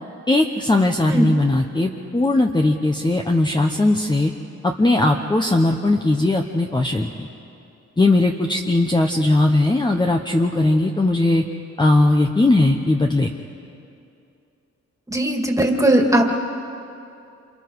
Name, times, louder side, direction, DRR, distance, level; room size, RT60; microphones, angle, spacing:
voice 1, 0.3-4.3 4.6-7.3 8.0-11.4 11.8-13.3, left 2 dB, 15° left, 2 dB, 1.0 m, -18 dB
voice 2, 15.1-16.4, right 1 dB, 10° right, 2 dB, 2.2 m, -18 dB
28.5 x 28.0 x 4.8 m, 2.6 s
wide cardioid pair, 110°, 29 cm